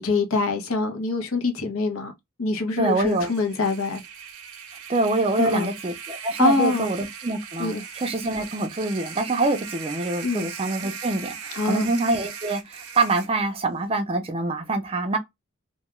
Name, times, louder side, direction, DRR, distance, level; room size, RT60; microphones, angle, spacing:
voice 1, 0.0-2.1 2.4-4.0 5.4-5.7 6.4-6.9 7.6-7.8 10.2-10.5 11.5-11.9, left 3 dB, 80° left, 0.7 m, -24 dB
voice 2, 2.8-3.3 4.9-15.2, right 2 dB, 25° right, 0.4 m, -25 dB
sound 1, 2.9-13.3, right 7 dB, 85° right, 0.6 m, -39 dB
2.2 x 2.2 x 2.9 m
head